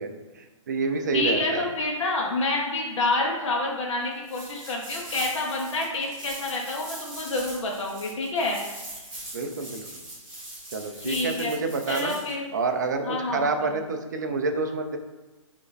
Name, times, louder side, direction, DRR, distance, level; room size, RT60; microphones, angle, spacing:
voice 1, 0.0-1.7 9.3-9.8 10.7-12.1 12.5-15.0, right 4 dB, 35° right, 5 dB, 0.4 m, -28 dB
voice 2, 1.1-8.6 11.0-11.5 11.9-12.5 13.0-13.7, left 2 dB, 60° left, -1 dB, 0.8 m, -28 dB
sound 1, 4.2-12.3, right 1 dB, 5° right, 1.0 m, -41 dB
4.6 x 2.5 x 3.1 m, 1.2 s
hypercardioid pair, 170°, 17 cm